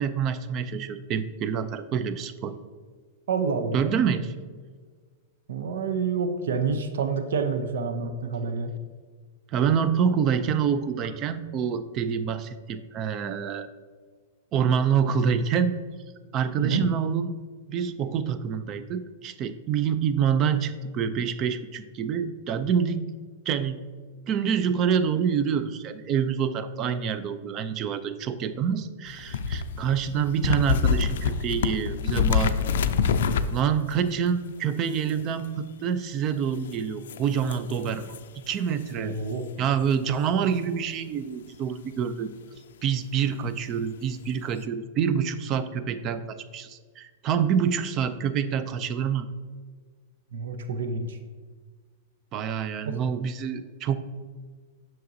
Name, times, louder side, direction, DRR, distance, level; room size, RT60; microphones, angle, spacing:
voice 1, 0.0-2.5 3.7-4.3 9.5-13.7 14.5-15.7 16.3-17.3 17.7-23.0 23.5-23.8 24.3-32.7 33.5-38.1 38.5-39.2 39.6-42.3 42.8-49.3 52.3-54.0, right 7 dB, 35° right, 12 dB, 0.4 m, -26 dB
voice 2, 3.3-3.8 5.5-8.7 16.6-16.8 39.0-39.4 50.3-51.2 52.8-52.9, right 5 dB, 80° right, 8 dB, 0.6 m, -28 dB
sound 1, 29.1-33.9 34.9-35.5 36.7-36.8 37.1-38.2 38.8-38.9 41.5-41.6, left 6 dB, 80° left, 0.4 m, -26 dB
7.7 x 5.9 x 2.7 m, 1.5 s
hypercardioid pair, 135°, 0 cm